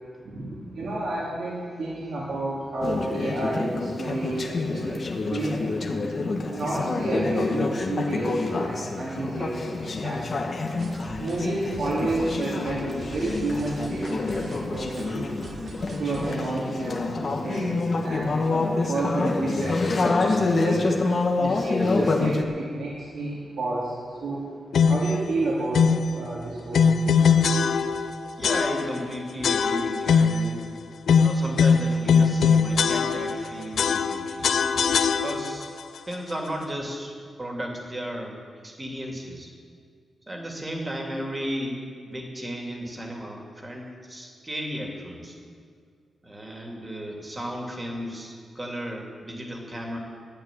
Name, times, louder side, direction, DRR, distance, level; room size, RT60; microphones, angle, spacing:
voice 1, 0.3-6.0 6.5-10.3 11.2-15.3 16.0-19.8 20.4-20.9 21.4-24.5 24.9-25.9 26.1-27.2, right 2 dB, 70° right, -6 dB, 3.1 m, -30 dB
Conversation / Chatter, 2.8-22.4, left 3 dB, 45° left, 1.5 m, -27 dB
sound 1, 10.8-16.4, right 3 dB, 45° right, 1.0 m, -42 dB
sound 2, 24.7-25.2 25.7-26.1 26.7-28.1 28.4-29.1 29.4-30.5 31.1-33.5 33.8-35.6, left 6 dB, 75° left, 0.7 m, -21 dB
voice 2, 28.4-30.8 31.2-34.5 35.2-35.7 36.1-37.1 37.4-38.4 38.6-39.5 40.3-45.3 46.2-50.0, equal, 20° right, 1 dB, 2.6 m, -34 dB
12.5 x 8.6 x 10.0 m, 2.1 s
wide cardioid pair, 110°, 0 cm